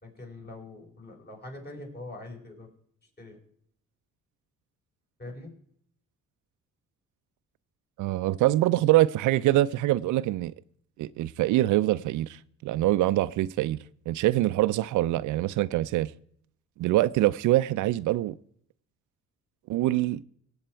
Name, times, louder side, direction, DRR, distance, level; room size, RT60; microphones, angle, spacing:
voice 1, 0.0-2.7 3.2-3.4 5.2-5.5, left 2 dB, 35° left, 4.7 m, -43 dB
voice 2, 8.0-10.5 11.0-13.8 14.1-16.1 16.8-18.4 19.7-20.2, right 16 dB, 80° right, 0.4 m, -24 dB
18.0 x 8.0 x 4.5 m
cardioid pair, 90°, 30 cm